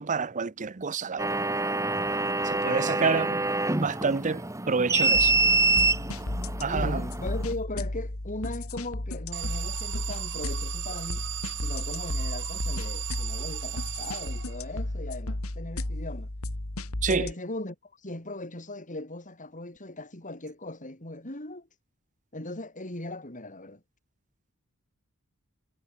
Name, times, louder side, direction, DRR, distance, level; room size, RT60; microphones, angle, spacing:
voice 1, 0.0-1.5 2.4-3.3 3.8-5.3 6.6-7.0 17.0-17.3, right 5 dB, 35° right, 0.7 m, -28 dB
sound 1, 1.2-7.5, right 3 dB, 15° right, 1.4 m, -26 dB
voice 2, 2.6-3.4 6.7-11.3 11.6-16.3 17.1-21.7 22.3-23.8, left 2 dB, 35° left, 4.3 m, -38 dB
sound 2, 5.1-17.3, left 1 dB, 80° left, 2.4 m, -34 dB
Alarm, 9.3-14.9, right 13 dB, 55° right, 1.7 m, -37 dB
head